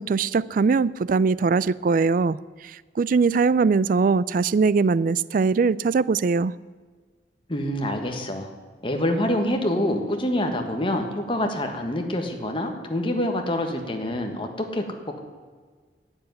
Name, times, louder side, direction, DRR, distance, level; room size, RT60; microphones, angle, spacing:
voice 1, 0.0-2.4 3.0-6.5, right 4 dB, 50° right, 0.3 m, -21 dB
voice 2, 7.5-8.5 8.8-15.2, left 1 dB, 30° left, 1.5 m, -26 dB
12.0 x 8.1 x 9.5 m
head